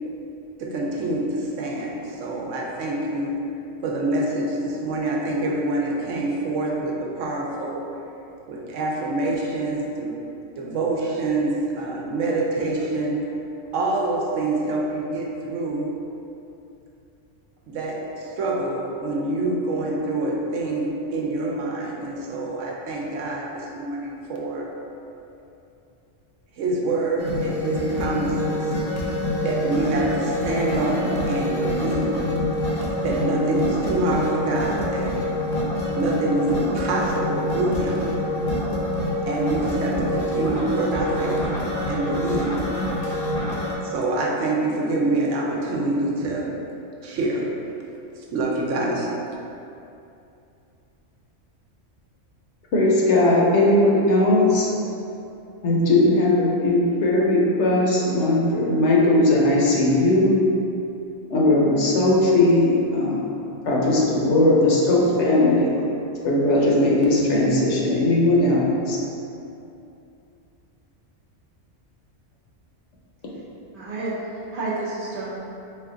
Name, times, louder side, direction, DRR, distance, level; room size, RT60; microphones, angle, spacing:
voice 1, 0.6-3.4 3.8-7.8 8.5-10.1 10.6-13.2 13.7-15.9 17.7-24.7 26.6-28.7 29.4-32.3 33.0-35.2 35.9-38.1 39.3-41.4 41.9-42.7 43.8-46.5 47.0-47.5 48.2-49.1, right 2 dB, 80° right, -2 dB, 0.9 m, -26 dB
sound 1, 27.2-43.7, left 1 dB, 50° left, 0.5 m, -26 dB
voice 2, 52.7-54.7 55.6-60.4 61.3-63.2 63.6-65.7 66.2-69.0, left 2 dB, 70° left, -4 dB, 1.0 m, -18 dB
voice 3, 73.7-75.3, right 2 dB, 55° right, -7 dB, 0.6 m, -30 dB
4.1 x 2.3 x 3.7 m, 2.7 s
omnidirectional pair, 1.3 m